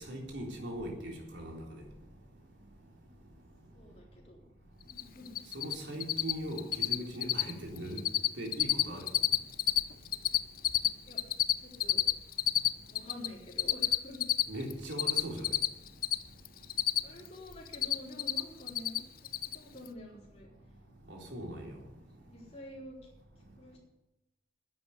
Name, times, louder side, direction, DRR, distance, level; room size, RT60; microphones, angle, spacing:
voice 1, 0.0-1.8 5.5-8.0 8.4-9.1 14.5-15.5 21.1-21.8, right 1 dB, 80° right, 3.6 m, -40 dB
voice 2, 3.7-4.5 4.8-5.4 11.0-11.2 11.5-12.0 12.9-14.3 17.0-20.5 22.3-23.0 23.6-23.8, left 1 dB, 35° left, 4.0 m, -48 dB
Cricket, 4.9-5.0 5.3-5.7 6.0-6.3 6.6-7.0 7.2-7.5 7.8-8.3 8.5-9.8 10.1-13.3 13.6-16.2 16.5-17.3 17.5-18.4 18.7-19.0 19.3-19.6, left 12 dB, 50° left, 0.6 m, -27 dB
10.5 x 8.4 x 9.7 m
head